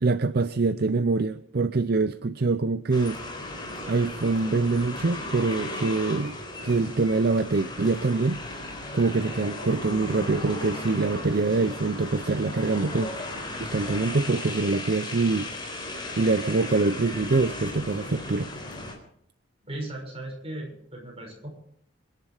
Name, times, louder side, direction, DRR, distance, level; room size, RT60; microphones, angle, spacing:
voice 1, 0.0-3.2 3.8-6.4 6.6-8.4 8.9-13.1 13.6-15.5 16.2-18.5, right 3 dB, 55° right, 12 dB, 0.6 m, -24 dB
sound 1, 2.9-18.9, left 2 dB, 25° left, 4.2 m, -36 dB
voice 2, 19.6-21.5, right 1 dB, 30° right, 0 dB, 6.3 m, -37 dB
26.5 x 10.5 x 5.0 m, 0.66 s
head